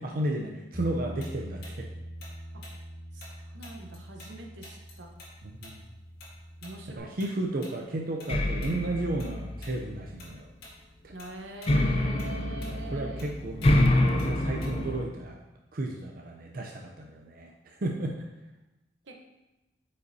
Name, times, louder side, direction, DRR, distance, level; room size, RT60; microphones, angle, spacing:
voice 1, 0.0-1.9 5.6-5.7 7.0-10.5 11.0-11.1 12.6-15.4 15.7-18.2, right 1 dB, 50° right, 0 dB, 0.6 m, -33 dB
Bass guitar, 0.7-7.0, equal, 20° right, 1.9 m, -43 dB
Tick-tock, 1.2-4.3 4.6-9.3 9.6-9.8 10.2-10.8 11.1-15.0, left 2 dB, 60° left, 1.8 m, -50 dB
voice 2, 3.1-5.1 6.6-7.2 11.1-13.2 19.0-19.2, right 2 dB, 80° right, 2 dB, 0.9 m, -44 dB
sound 1, 8.3-10.2 11.7-15.1, left 1 dB, 30° left, 0.5 m, -26 dB
8.3 x 5.4 x 2.7 m, 1.0 s
head